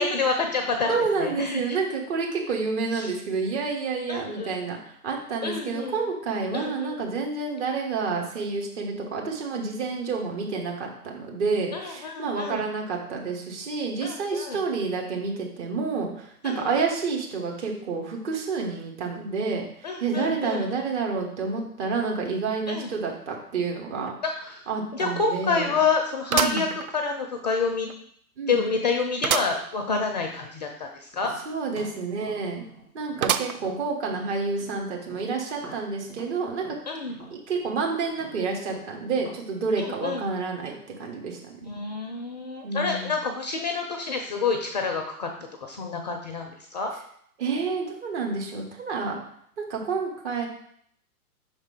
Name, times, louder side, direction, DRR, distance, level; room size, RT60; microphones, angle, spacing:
voice 1, 0.0-0.9 1.2-1.8 2.9-3.1 4.1-4.5 5.4-6.0 6.5-7.0 11.7-12.6 14.0-14.6 16.4-16.7 19.8-20.7 22.7-22.9 24.2-24.6 24.9-26.7 26.9-27.9 28.5-31.3 36.9-37.2 39.8-40.2 41.6-45.3 45.6-46.9, left 4 dB, 30° left, 4 dB, 0.4 m, -28 dB
voice 2, 0.9-24.1 24.7-25.8 26.3-26.7 28.4-28.6 31.4-32.6 32.9-36.6 37.3-41.7 42.6-43.1 47.4-49.2 49.6-50.5, right 4 dB, 45° right, 0 dB, 1.5 m, -29 dB
sound 1, 24.1-24.2 24.6-24.7 26.3-27.4 27.9-28.0 29.2-29.6 30.1-30.2 30.3-30.4 33.2-33.8 34.4-34.5 35.5-35.6, right 9 dB, 65° right, 0.5 m, -27 dB
Tap, 31.1-34.8 35.0-39.4, right 2 dB, 90° right, 2.6 m, -46 dB
5.5 x 3.6 x 4.9 m, 0.66 s
figure-of-eight pair, 115°, 46 cm